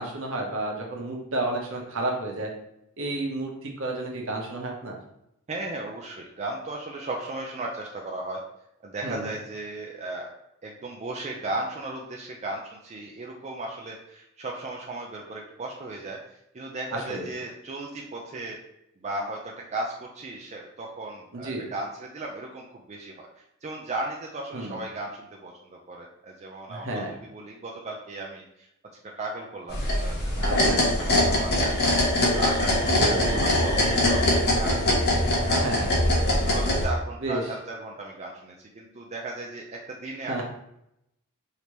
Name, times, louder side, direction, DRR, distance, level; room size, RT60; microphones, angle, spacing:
voice 1, 0.0-2.5 3.0-5.0 9.0-9.3 16.9-17.2 21.3-21.7 24.5-24.8 26.7-27.1 30.4-30.8 33.0-33.4 35.5-35.9 37.2-37.4 40.3-40.4, right 2 dB, 65° right, 0 dB, 1.0 m, -31 dB
voice 2, 5.5-8.4 8.8-10.3 10.6-18.6 19.0-28.7 29.0-32.0 32.3-35.6 36.2-40.4, right 2 dB, 30° right, -1 dB, 0.4 m, -36 dB
sound 1, 29.7-36.9, left 1 dB, 50° left, 1.2 m, -22 dB
5.1 x 2.8 x 3.1 m, 0.80 s
head